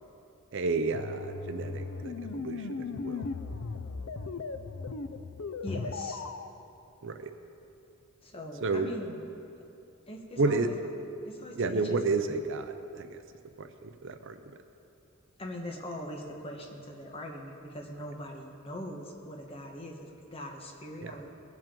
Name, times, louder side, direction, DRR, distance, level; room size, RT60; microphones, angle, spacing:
voice 1, 0.5-3.3 7.0-7.3 8.6-8.9 10.4-10.7 11.6-13.2 13.6-14.4 21.0-21.1, right 3 dB, 60° right, 8 dB, 0.6 m, -31 dB
sound 1, 0.9-6.5, left 4 dB, 65° left, 0.5 m, -37 dB
voice 2, 5.6-6.2 8.2-9.2 10.1-10.7 11.3-12.1 15.4-21.3, left 1 dB, 25° left, 1 dB, 1.2 m, -41 dB
19.5 x 7.5 x 3.8 m, 2.8 s
head